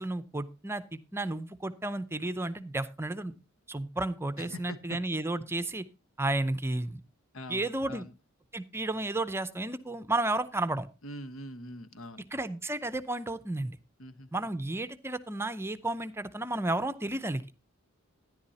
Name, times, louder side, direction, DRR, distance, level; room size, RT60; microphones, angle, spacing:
voice 1, 0.0-3.4 3.7-5.9 6.2-7.0 7.5-8.1 8.5-10.9 12.3-13.8 14.3-17.4, right 2 dB, 10° right, 12 dB, 0.6 m, -32 dB
voice 2, 4.4-5.0 7.3-8.1 11.0-12.2 14.0-14.5, left 1 dB, 85° left, 12 dB, 1.1 m, -43 dB
13.0 x 10.5 x 2.8 m, 0.28 s
head